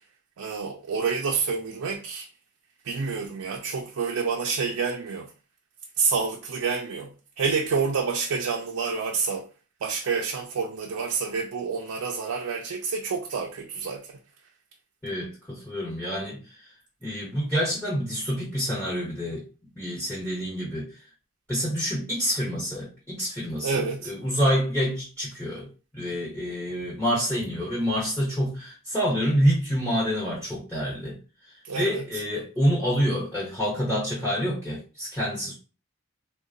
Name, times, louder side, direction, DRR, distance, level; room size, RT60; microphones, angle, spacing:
voice 1, 0.4-2.3 2.8-5.3 6.0-9.5 9.8-14.2 23.6-24.1 31.6-32.0, right 5 dB, 90° right, 0.4 m, -28 dB
voice 2, 15.0-16.7 17.0-19.5 19.8-21.0 21.5-25.7 25.9-31.2 31.4-35.5, equal, 5° left, 0.8 m, -27 dB
3.7 x 2.2 x 2.5 m
head